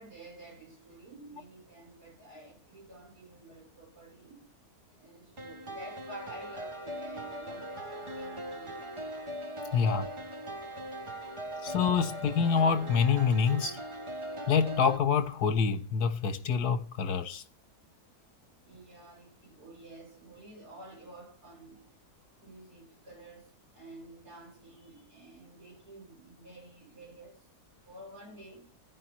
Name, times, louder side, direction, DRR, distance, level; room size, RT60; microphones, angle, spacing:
voice 1, 0.0-4.4 4.9-8.8 9.7-9.9 18.6-21.8 22.4-27.4 27.8-28.7, right 1 dB, 75° right, 5.0 m, -50 dB
sound 1, 5.4-15.0, right 1 dB, 50° right, 0.3 m, -40 dB
voice 2, 9.7-10.0 11.6-13.8 14.5-17.4, left 6 dB, 80° left, 1.4 m, -26 dB
15.0 x 5.4 x 3.0 m
omnidirectional pair, 1.7 m